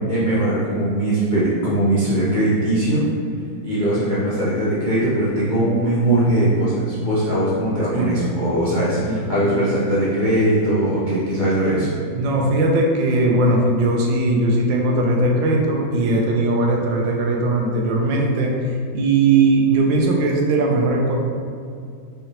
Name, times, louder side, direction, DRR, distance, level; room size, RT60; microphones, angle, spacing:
voice 1, 0.1-3.1 3.6-11.9, right 1 dB, 50° left, -10 dB, 0.5 m, -20 dB
voice 2, 9.0-9.5 11.7-11.8 12.1-18.6 18.9-21.1, right 2 dB, 75° right, 0 dB, 1.3 m, -19 dB
5.7 x 3.2 x 2.9 m, 2.2 s
omnidirectional pair, 2.1 m